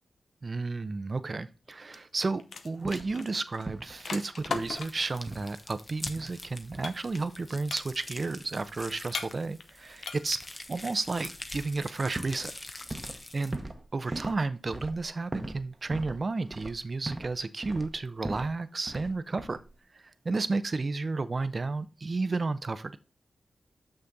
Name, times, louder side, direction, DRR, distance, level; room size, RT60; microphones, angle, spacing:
voice 1, 0.4-10.4 10.7-12.5 13.3-13.6 13.9-19.6 19.9-23.0, right 3 dB, 50° right, 12 dB, 0.7 m, -32 dB
sound 1, 1.9-5.2 6.8-7.4 7.7-8.2 9.1-9.7 10.0-10.5, left 5 dB, 80° left, 0.7 m, -38 dB
sound 2, 2.9-3.2 3.7-4.1 4.4-4.8 5.3-5.6 6.2-6.4 6.7-7.0 11.6-11.8 12.2-13.3 13.5-17.4 17.6-18.6 18.9-19.1 19.4-19.7, right 2 dB, 30° right, 1.1 m, -40 dB
sound 3, 4.5-13.6, left 2 dB, 30° left, 1.0 m, -45 dB
6.4 x 5.9 x 4.0 m, 0.31 s
cardioid pair, 50°, 0 cm